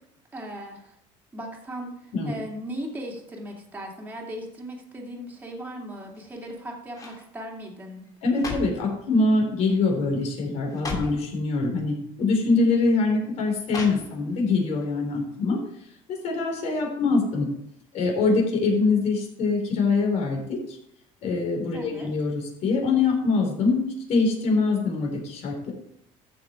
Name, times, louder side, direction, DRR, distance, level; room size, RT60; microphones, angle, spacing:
voice 1, 0.3-1.0 1.3-8.0 21.7-22.1, right 1 dB, 10° right, -1 dB, 2.6 m, -37 dB
sound 1, 6.1-6.5 6.9-7.3 8.0-8.9 9.7-9.9 10.2-10.3 10.7-11.2 12.2-12.3 13.7-14.4 14.8-14.9, left 2 dB, 25° left, 3.0 m, -36 dB
voice 2, 8.2-15.6 16.1-17.5 17.9-20.8 21.2-25.7, left 3 dB, 50° left, 0 dB, 4.4 m, -24 dB
14.0 x 6.4 x 4.7 m, 0.74 s
cardioid pair, 145°, 14 cm